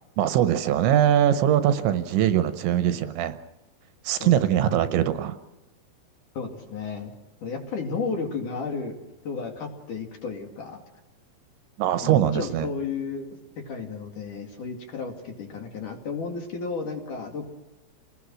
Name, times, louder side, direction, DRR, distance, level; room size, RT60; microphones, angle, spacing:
voice 1, 0.2-3.4 4.0-5.4 11.8-12.7, right 11 dB, 75° right, 10 dB, 3.0 m, -22 dB
voice 2, 4.2-4.8 6.3-7.1 7.4-9.0 9.2-10.8 12.0-13.3 13.6-17.5, left 4 dB, 50° left, 3 dB, 3.1 m, -33 dB
29.0 x 20.0 x 6.3 m, 0.98 s
omnidirectional pair, 5.6 m